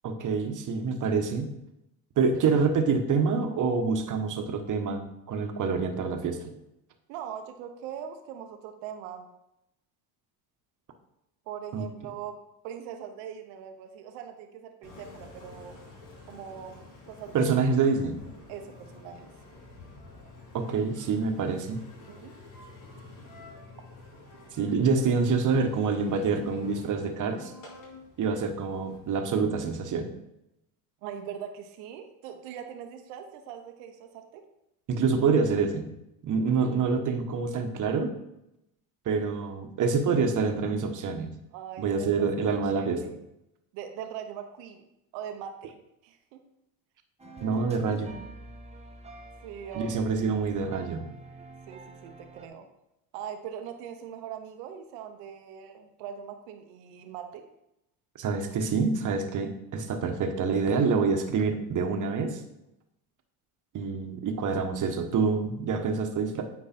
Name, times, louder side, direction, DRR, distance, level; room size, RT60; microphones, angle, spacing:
voice 1, 0.0-1.5 2.2-6.5 11.7-11.9 17.3-18.2 20.5-21.8 24.6-27.5 28.2-30.1 34.9-35.9 36.2-38.1 39.0-41.3 41.8-43.0 47.4-48.2 49.7-51.1 58.2-62.4 63.7-66.4, right 5 dB, 45° right, 6 dB, 1.2 m, -26 dB
voice 2, 7.1-9.3 11.5-12.4 12.6-15.8 16.3-17.8 18.5-19.3 22.1-22.3 31.0-34.4 41.5-43.2 43.7-44.9 45.1-45.8 46.0-46.4 49.4-50.4 51.7-52.7 53.1-57.4, right 8 dB, 80° right, 6 dB, 1.0 m, -41 dB
Engine, 14.8-29.8, left 3 dB, 45° left, 2.6 m, -49 dB
sound 1, 47.2-52.5, right 3 dB, 15° right, 1.1 m, -46 dB
8.5 x 4.7 x 4.3 m, 0.85 s
supercardioid pair, 95°, 44 cm